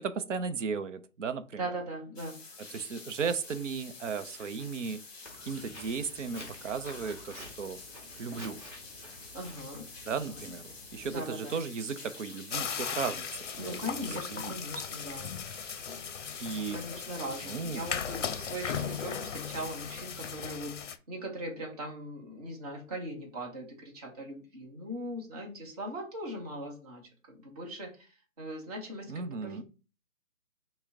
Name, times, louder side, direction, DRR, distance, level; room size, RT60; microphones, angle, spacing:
voice 1, 0.0-1.6 2.7-5.0 5.4-7.8 8.2-8.6 10.0-13.3 13.6-14.5 16.4-16.8 17.4-17.8 29.1-29.6, right 5 dB, 60° right, 0.6 m, -35 dB
voice 2, 1.6-2.4 9.3-9.9 11.1-11.6 13.6-15.3 16.7-20.8 21.1-27.0 27.3-28.1 28.4-29.6, right 1 dB, 30° right, 1.1 m, -39 dB
sound 1, 2.2-20.3, left 4 dB, 20° left, 1.1 m, -48 dB
Walk footsteps, 5.2-11.3, left 1 dB, 5° right, 1.2 m, -50 dB
sound 2, 12.5-21.0, left 7 dB, 60° left, 0.6 m, -37 dB
5.5 x 2.2 x 3.6 m
hypercardioid pair, 160°, 41 cm